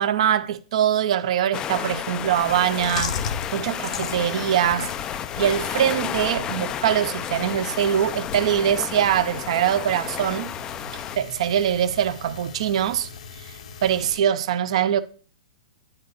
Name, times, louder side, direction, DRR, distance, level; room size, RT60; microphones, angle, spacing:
voice 1, 0.0-3.2 3.5-4.9 5.4-10.5 10.9-13.1 13.8-15.0, right 10 dB, 60° right, 0.6 m, -23 dB
sound 1, 1.5-11.2, left 9 dB, 20° left, 0.3 m, -32 dB
Chewing mastication, 2.3-14.2, left 6 dB, 75° left, 0.9 m, -37 dB
9.2 x 4.3 x 5.1 m
hypercardioid pair, 135°, 4 cm